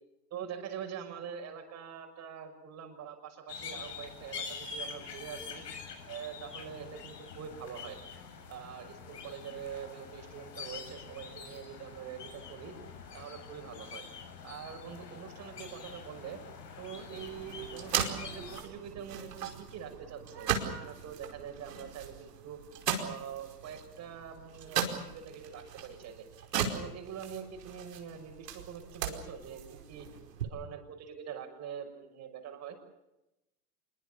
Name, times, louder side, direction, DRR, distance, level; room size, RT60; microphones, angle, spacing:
voice 1, 0.3-5.6 6.1-8.0 8.5-12.7 13.1-14.0 14.4-16.4 16.8-22.6 23.0-26.3 26.7-30.1 30.4-32.8, right 8 dB, 35° right, 4 dB, 6.3 m, -44 dB
sound 1, 3.5-18.6, left 5 dB, 80° left, 7.7 m, -46 dB
sound 2, 17.2-30.4, right 7 dB, 80° right, 5.0 m, -38 dB
26.0 x 23.5 x 7.2 m, 0.92 s
hypercardioid pair, 115°, 48 cm